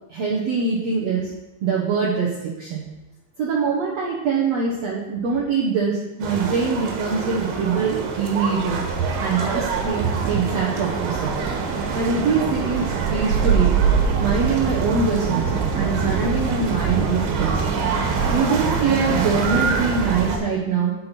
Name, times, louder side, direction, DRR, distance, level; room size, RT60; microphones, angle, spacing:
voice 1, 0.1-1.3 1.6-2.8 3.4-11.3 11.9-12.8 13.1-13.8 14.2-17.6 18.3-20.9, right 5 dB, 70° right, -3 dB, 1.6 m, -23 dB
sound 1, 6.2-20.4, right 5 dB, 90° right, 3.2 m, -24 dB
8.6 x 8.0 x 4.4 m, 1.0 s
omnidirectional pair, 4.6 m